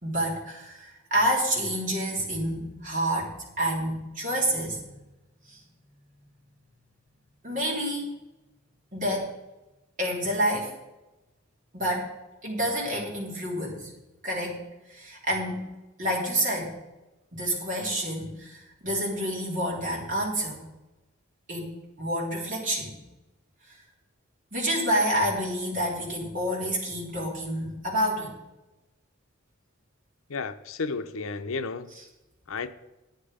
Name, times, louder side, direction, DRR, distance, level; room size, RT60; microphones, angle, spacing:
voice 1, 0.0-3.3 3.6-4.8 5.5-5.6 7.4-8.1 8.9-9.3 10.0-10.7 11.7-12.1 12.4-13.9 14.2-14.6 14.9-16.7 17.3-20.6 21.5-21.7 22.0-22.9 24.5-28.3, equal, 40° right, 3.4 m, -28 dB
voice 2, 30.3-31.9 32.5-32.7, left 4 dB, 80° left, 0.6 m, -32 dB
10.5 x 9.5 x 5.0 m
head